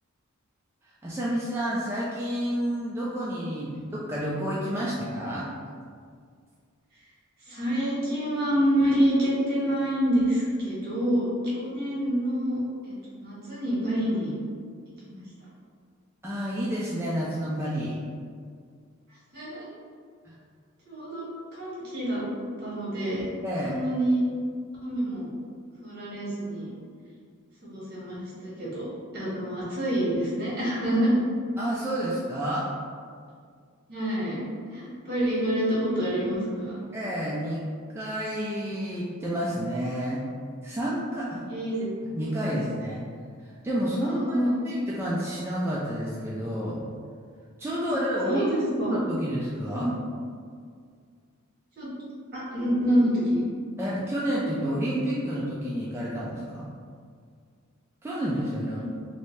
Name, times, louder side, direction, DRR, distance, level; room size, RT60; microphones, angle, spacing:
voice 1, 1.0-5.5 16.2-18.0 20.3-20.4 23.4-23.8 31.6-32.7 36.9-37.6 37.9-40.2 40.6-41.5 42.1-43.0 43.6-46.8 47.6-48.4 48.9-49.9 53.8-56.7 58.0-58.8, equal, 10° right, -7 dB, 0.3 m, -29 dB
voice 2, 7.4-14.3 15.0-15.2 19.3-19.7 20.9-22.2 22.6-23.3 23.6-24.2 24.8-25.3 25.8-26.7 27.6-31.1 33.9-34.4 34.7-36.8 41.5-41.9 42.5-42.7 44.0-44.5 47.9-48.0 48.2-48.9 49.7-49.9 51.8-51.9 52.3-53.5 58.7-58.8, equal, 50° right, -8 dB, 1.4 m, -27 dB
3.1 x 2.7 x 3.1 m, 2.1 s
head